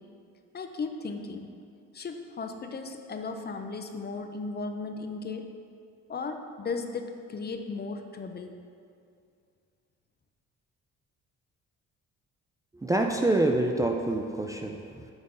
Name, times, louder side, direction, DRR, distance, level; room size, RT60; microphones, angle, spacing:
voice 1, 0.5-1.5 1.9-5.5 6.1-8.6, left 4 dB, 35° left, 5 dB, 0.6 m, -36 dB
voice 2, 12.7-15.1, right 2 dB, 10° right, 2 dB, 0.4 m, -26 dB
8.0 x 3.7 x 5.2 m, 2.3 s
cardioid pair, 90°, 30 cm